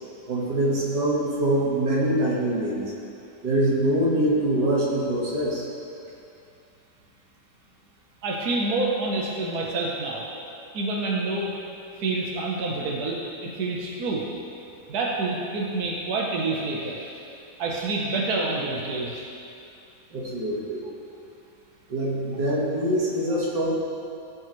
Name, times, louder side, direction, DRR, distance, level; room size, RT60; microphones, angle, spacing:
voice 1, 0.3-2.9 3.4-5.7 20.1-20.8 21.9-23.7, right 1 dB, 90° right, -5 dB, 2.4 m, -24 dB
voice 2, 8.2-10.3 10.7-11.5 12.0-14.2 14.9-17.1 17.6-19.2, right 2 dB, 65° right, -2 dB, 1.5 m, -27 dB
18.0 x 6.3 x 3.2 m, 2.6 s
omnidirectional pair, 1.8 m